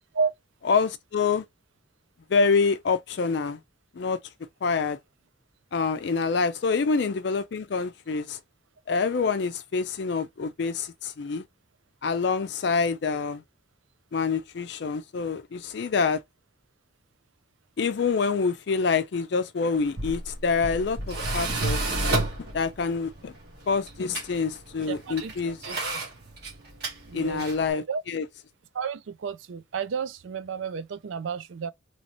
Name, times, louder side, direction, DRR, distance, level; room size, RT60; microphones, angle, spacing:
voice 1, 0.7-1.4 2.3-3.6 4.0-4.2 4.6-5.0 5.7-8.4 8.9-11.4 12.0-13.4 14.1-16.2 17.8-22.0 22.5-23.3 23.7-25.6 27.1-28.3, left 5 dB, 60° left, 0.4 m, -26 dB
Tools, 19.7-27.7, right 2 dB, 55° right, 1.2 m, -32 dB
voice 2, 24.9-25.8 27.1-27.5 27.9-28.0 28.7-31.7, right 5 dB, 75° right, 0.4 m, -31 dB
3.0 x 2.7 x 2.9 m
head